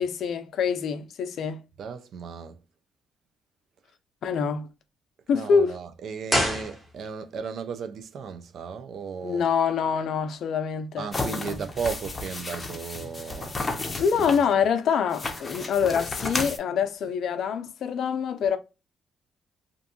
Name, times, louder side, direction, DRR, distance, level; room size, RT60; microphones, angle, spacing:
voice 1, 0.0-1.6 4.2-4.7 5.3-5.8 9.2-11.6 14.0-18.6, left 6 dB, 70° left, 0.4 m, -25 dB
voice 2, 1.8-2.6 5.3-9.4 11.0-13.6 14.1-14.4, right 6 dB, 65° right, 0.4 m, -35 dB
sound 1, 6.3-7.4 7.6-7.7, equal, 5° right, 1.0 m, -27 dB
sound 2, 11.1-14.4 15.1-16.6, left 2 dB, 25° left, 0.6 m, -33 dB
2.5 x 2.2 x 2.7 m
cardioid pair, 90°, 0 cm